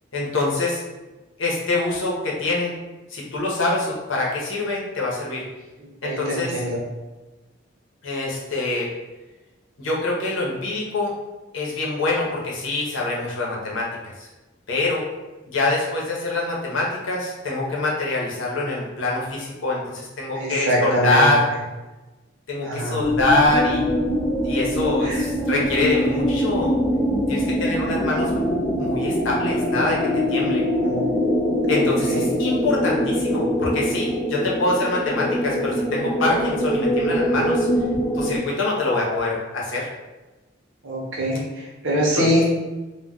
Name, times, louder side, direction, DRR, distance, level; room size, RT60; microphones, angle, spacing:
voice 1, 0.1-0.8 1.4-2.8 3.1-5.4 6.0-6.5 8.0-8.9 9.8-11.1 11.5-14.3 14.7-15.1 15.5-21.5 22.5-23.8 24.4-26.8 27.3-28.4 28.8-30.7 31.7-37.7 38.1-39.9 42.1-42.3, left 2 dB, 70° left, -3 dB, 0.7 m, -24 dB
voice 2, 6.0-6.8 20.4-21.3 22.6-23.0 25.0-25.2 30.8-31.1 31.7-32.3 40.8-42.5, equal, 70° right, -3 dB, 0.8 m, -24 dB
sound 1, 23.0-38.4, equal, 25° left, 0.6 m, -23 dB
2.2 x 2.1 x 3.7 m, 1.1 s
head